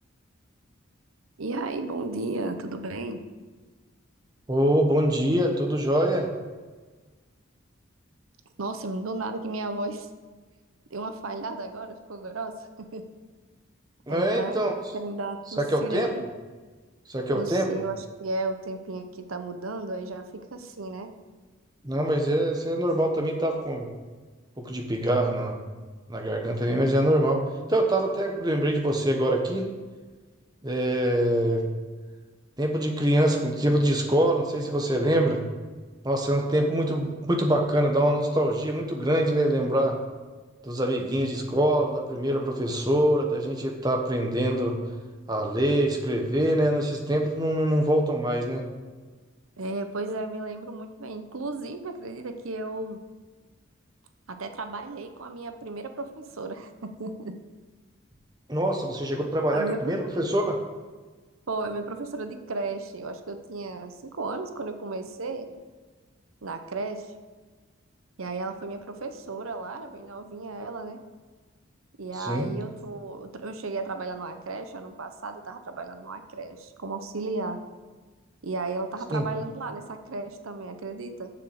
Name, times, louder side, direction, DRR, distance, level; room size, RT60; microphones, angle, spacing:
voice 1, 1.4-3.2 8.6-10.1 10.9-13.0 14.1-14.6 14.9-16.2 17.3-21.1 49.6-53.0 54.3-57.3 59.5-59.8 61.5-65.5 66.4-67.1 68.2-71.0 72.0-77.6 78.4-81.3, right 3 dB, 85° right, 7 dB, 0.8 m, -34 dB
voice 2, 4.5-6.3 14.1-14.7 15.7-16.1 17.1-17.7 21.8-23.9 24.6-25.6 26.1-27.4 27.7-29.7 30.6-31.7 32.6-35.4 36.0-40.0 40.6-44.8 45.3-48.6 58.5-60.6 72.2-72.5 79.1-79.2, right 1 dB, 20° right, 2 dB, 1.1 m, -24 dB
7.4 x 6.9 x 7.8 m, 1.4 s
head